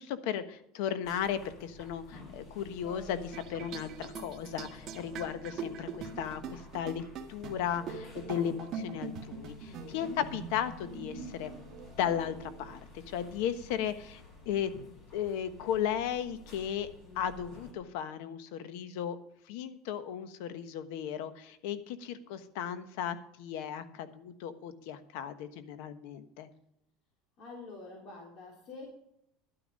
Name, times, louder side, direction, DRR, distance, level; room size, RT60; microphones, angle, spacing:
voice 1, 0.0-7.0 7.3-11.5 12.0-14.7 15.1-16.9 17.1-19.2 19.5-26.5, left 9 dB, 75° left, 11 dB, 1.2 m, -35 dB
sound 1, 1.0-17.7, left 2 dB, 30° left, 5.8 m, -51 dB
sound 2, 3.3-12.8, right 5 dB, 40° right, 1.6 m, -43 dB
voice 2, 9.9-10.2 27.4-29.0, left 3 dB, 50° left, -1 dB, 3.4 m, -46 dB
11.5 x 9.9 x 5.3 m, 0.76 s
supercardioid pair, 135°, 0 cm